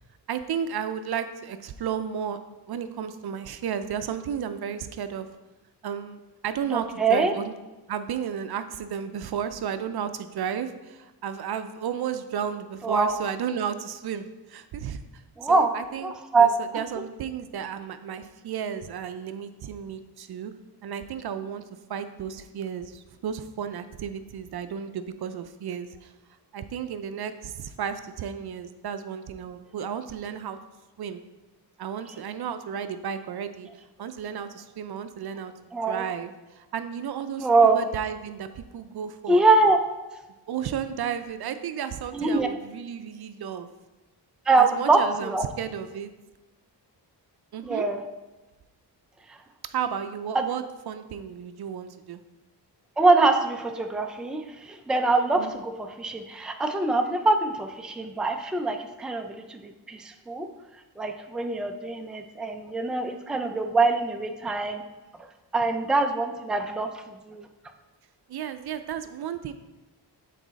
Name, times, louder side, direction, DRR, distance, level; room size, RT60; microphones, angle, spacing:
voice 1, 0.3-2.4 2.7-5.3 5.8-7.5 7.9-16.1 16.4-20.5 20.8-21.6 21.9-26.1 26.5-30.6 31.0-31.2 31.8-33.7 34.0-35.5 35.9-39.4 40.5-43.7 44.6-46.1 47.5-47.9 49.6-52.2 55.4-55.5 68.3-69.5, right 8 dB, 65° right, 10 dB, 0.5 m, -33 dB
voice 2, 6.7-7.3 12.8-13.1 15.4-15.7 16.0-16.5 35.7-36.0 37.4-37.8 39.3-39.8 42.1-42.5 44.5-45.4 47.6-48.0 49.3-49.4 50.3-50.4 53.0-60.5 61.0-64.8 65.2-65.3 65.5-67.5, right 3 dB, ahead, 5 dB, 0.4 m, -23 dB
8.4 x 4.1 x 4.0 m, 1.1 s
wide cardioid pair, 115°, 42 cm